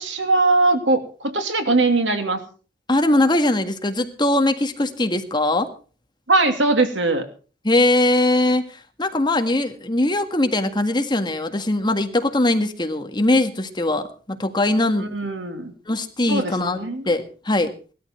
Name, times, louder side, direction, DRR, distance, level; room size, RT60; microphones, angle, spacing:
voice 1, 0.0-2.4 6.3-7.2 15.0-15.7 16.3-17.1, right 2 dB, 85° right, 6 dB, 2.7 m, -20 dB
voice 2, 2.9-5.7 7.6-15.1 15.9-17.7, left 1 dB, 25° left, 7 dB, 1.7 m, -21 dB
19.0 x 13.0 x 4.5 m, 0.38 s
head